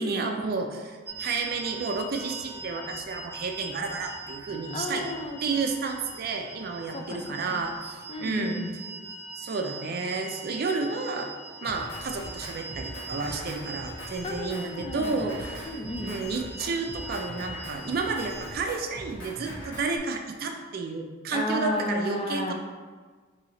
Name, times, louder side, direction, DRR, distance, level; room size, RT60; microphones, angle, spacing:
voice 1, 0.0-5.1 5.4-8.6 9.4-11.3 11.6-15.7 16.0-22.5, right 4 dB, 45° right, 4 dB, 0.4 m, -31 dB
sound 1, 1.1-18.5, right 3 dB, 10° right, 0.7 m, -42 dB
voice 2, 4.7-5.4 6.9-7.6 8.1-8.7 14.2-15.2 15.6-16.1 21.3-22.5, left 1 dB, 25° left, 3 dB, 0.4 m, -32 dB
Drum kit, 11.6-20.0, equal, 75° left, 1.3 m, -41 dB
4.0 x 2.7 x 4.2 m, 1.4 s
head